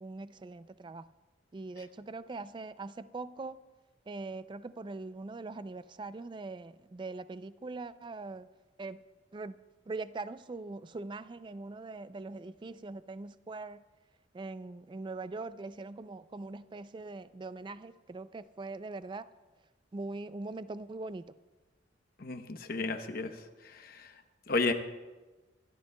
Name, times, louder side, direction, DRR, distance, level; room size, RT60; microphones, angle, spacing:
voice 1, 0.0-1.1 1.5-3.6 4.1-8.5 8.8-9.0 9.3-9.6 9.9-13.8 14.3-19.3 19.9-21.3, right 3 dB, 25° right, 14 dB, 0.3 m, -42 dB
voice 2, 22.2-23.4 23.6-24.1 24.5-24.7, left 3 dB, 50° left, 6 dB, 0.9 m, -32 dB
28.0 x 12.5 x 2.2 m, 1.2 s
head